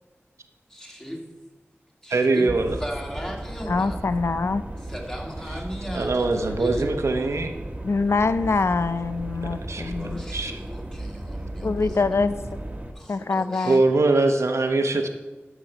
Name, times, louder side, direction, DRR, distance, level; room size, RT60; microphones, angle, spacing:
voice 1, 0.7-1.3 2.0-4.1 4.8-6.9 9.9-12.3 12.9-14.1, equal, 15° left, -1 dB, 2.2 m, -37 dB
voice 2, 2.1-2.8 5.9-7.5 9.4-9.9 10.3-10.5 13.6-15.1, right 3 dB, 85° right, 5 dB, 0.9 m, -22 dB
sound 1, 2.5-12.9, right 1 dB, 30° right, 1.3 m, -35 dB
voice 3, 3.7-4.6 7.8-10.2 11.6-12.4 13.1-13.8, left 3 dB, 70° left, 12 dB, 0.5 m, -24 dB
11.0 x 6.0 x 5.6 m, 1.2 s
wide cardioid pair, 55°, 5 cm